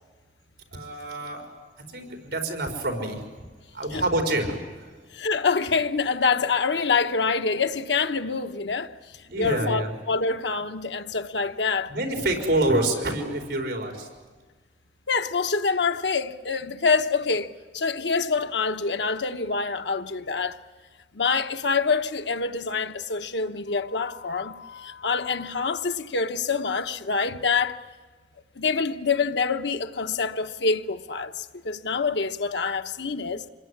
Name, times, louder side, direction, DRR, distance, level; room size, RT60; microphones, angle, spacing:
voice 1, 0.7-1.5 1.8-3.5 3.7-5.0 9.3-9.9 11.9-14.1, right 1 dB, 65° right, 4.7 m, -27 dB
voice 2, 5.1-8.9 9.4-11.9 15.1-20.6 21.1-27.8 28.6-33.5, left 4 dB, 80° left, 1.1 m, -26 dB
26.0 x 21.5 x 9.9 m
head